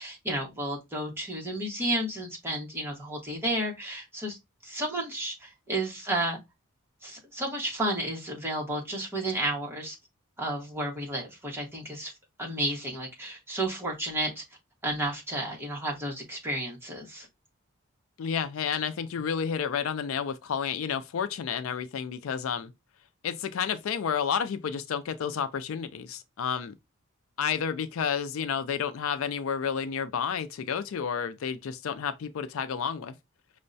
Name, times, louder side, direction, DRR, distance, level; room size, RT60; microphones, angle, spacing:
voice 1, 0.0-4.4 4.6-6.4 7.0-10.0 10.4-12.1 12.4-14.4 14.8-17.3, right 1 dB, 10° right, 1.1 m, -32 dB
voice 2, 18.2-22.7 23.2-26.7 27.4-33.2, left 7 dB, 70° left, 0.4 m, -31 dB
5.3 x 2.1 x 2.5 m
head